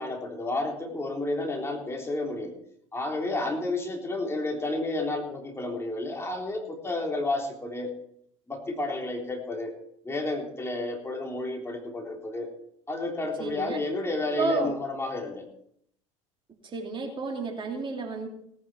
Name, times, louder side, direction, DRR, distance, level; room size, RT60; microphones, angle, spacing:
voice 1, 0.0-2.6 2.9-7.9 8.5-9.7 10.0-12.5 12.9-15.5, left 2 dB, 15° left, 1 dB, 3.6 m, -31 dB
voice 2, 13.4-13.8 14.4-14.7 16.6-18.3, right 3 dB, 30° right, 2 dB, 2.9 m, -31 dB
18.0 x 9.5 x 4.6 m, 0.69 s
hypercardioid pair, 75°, 17 cm